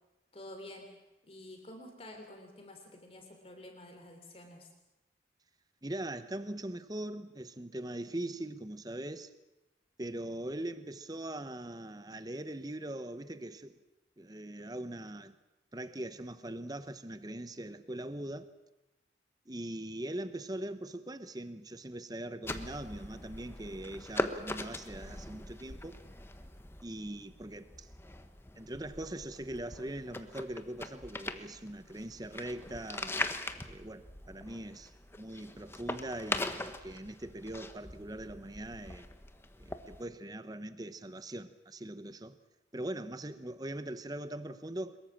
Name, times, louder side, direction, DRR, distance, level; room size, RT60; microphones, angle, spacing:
voice 1, 0.3-0.9 1.3-4.7, left 1 dB, 35° left, 3.3 m, -49 dB
voice 2, 5.8-9.3 10.0-13.8 14.2-15.3 15.7-18.5 19.5-26.0 26.8-27.9 28.6-33.1 33.7-34.9 35.2-39.1 39.6-42.4 42.7-45.0, right 1 dB, 20° right, 1.0 m, -41 dB
sound 1, 22.4-40.0, left 2 dB, 15° left, 1.2 m, -41 dB
23.0 x 22.0 x 7.4 m
head